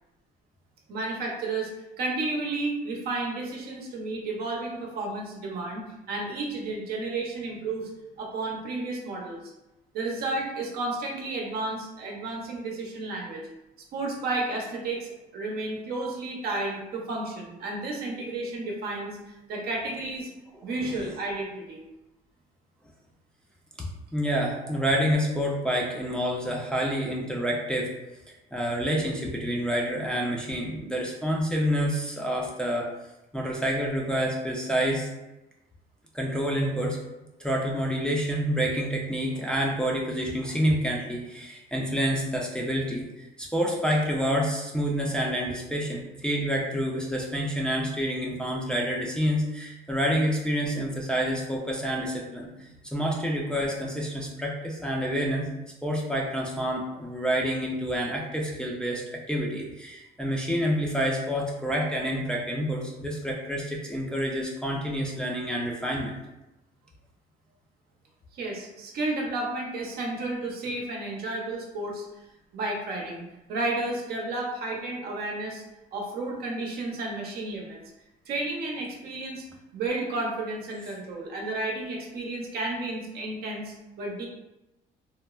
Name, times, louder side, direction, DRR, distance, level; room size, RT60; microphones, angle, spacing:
voice 1, 0.9-1.7 2.0-7.9 8.2-9.4 9.9-13.4 13.9-19.2 19.5-20.3 20.6-21.8 24.6-24.7 68.3-72.0 72.5-73.2 73.5-75.6 75.9-77.8 78.3-79.4 79.7-84.3, right 2 dB, 65° right, -1 dB, 0.7 m, -32 dB
voice 2, 24.1-27.9 28.5-32.9 33.3-35.1 36.1-37.0 37.4-66.2, equal, 5° left, -3 dB, 0.4 m, -28 dB
3.2 x 2.0 x 2.3 m, 0.98 s
cardioid pair, 110°, 17 cm